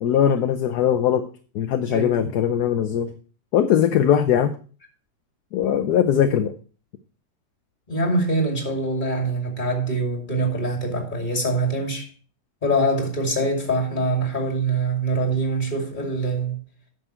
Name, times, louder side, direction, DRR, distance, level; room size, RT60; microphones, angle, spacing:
voice 1, 0.0-1.3 1.5-3.1 3.5-4.5 5.5-6.5, left 9 dB, 65° left, 1.2 m, -20 dB
voice 2, 1.9-2.3 7.9-12.1 12.6-16.6, right 2 dB, 25° left, 2.7 m, -24 dB
9.8 x 6.7 x 4.5 m
omnidirectional pair, 2.0 m